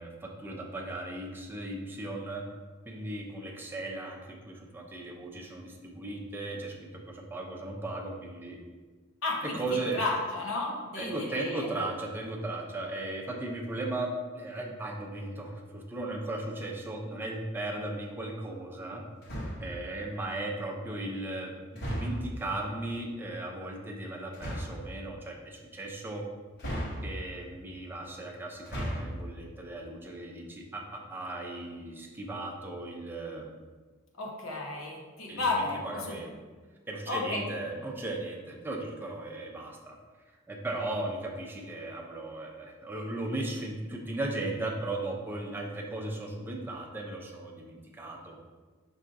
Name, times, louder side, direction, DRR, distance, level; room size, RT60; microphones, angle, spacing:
voice 1, 0.0-2.4 2.9-6.7 7.1-8.6 9.4-10.0 11.0-19.0 19.6-26.2 27.0-33.5 35.3-36.3 36.9-40.0 40.5-48.4, right 2 dB, 10° right, -1 dB, 0.5 m, -36 dB
voice 2, 9.2-9.6 9.9-11.7 34.2-36.2 37.1-37.4, left 3 dB, 75° left, -2 dB, 1.0 m, -32 dB
sound 1, 19.2-19.8 21.7-22.4 24.3-24.8 26.6-27.4 28.5-29.2, equal, 55° left, 1.0 m, -35 dB
5.4 x 3.6 x 2.6 m, 1.4 s
head